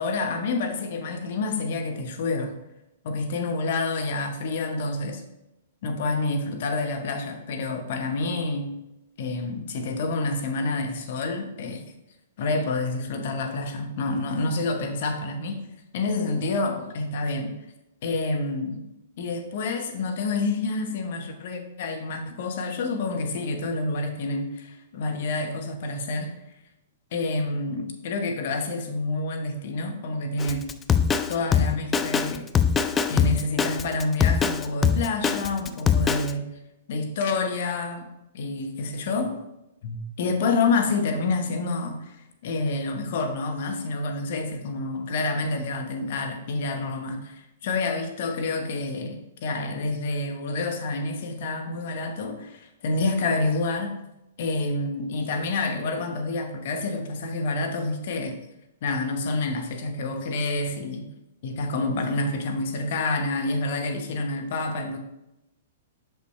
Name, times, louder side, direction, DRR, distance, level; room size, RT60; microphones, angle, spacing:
voice 1, 0.0-2.5 3.0-5.2 5.8-8.7 9.2-11.8 12.4-15.7 15.9-17.6 18.0-18.8 19.2-26.3 27.1-30.7 31.3-32.5 33.1-36.5 36.9-38.1 38.3-39.3 39.8-42.2 42.4-53.9 54.4-58.4 58.8-61.1 61.4-65.0, left 3 dB, 55° left, 5 dB, 1.0 m, -28 dB
Drum kit, 30.4-36.3, left 7 dB, 15° left, 0.3 m, -22 dB
6.0 x 5.6 x 3.1 m, 0.90 s
figure-of-eight pair, 115°, 0 cm